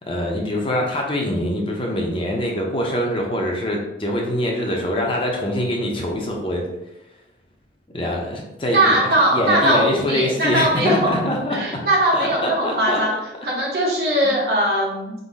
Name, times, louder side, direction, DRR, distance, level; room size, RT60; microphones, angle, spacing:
voice 1, 0.1-6.7 7.9-9.0 9.3-11.8 12.1-13.0 14.2-14.4, left 1 dB, 30° left, 0 dB, 0.7 m, -24 dB
voice 2, 8.6-11.2 11.5-13.1 13.4-15.1, right 1 dB, 60° right, -4 dB, 1.2 m, -20 dB
3.9 x 2.7 x 4.0 m, 0.92 s
head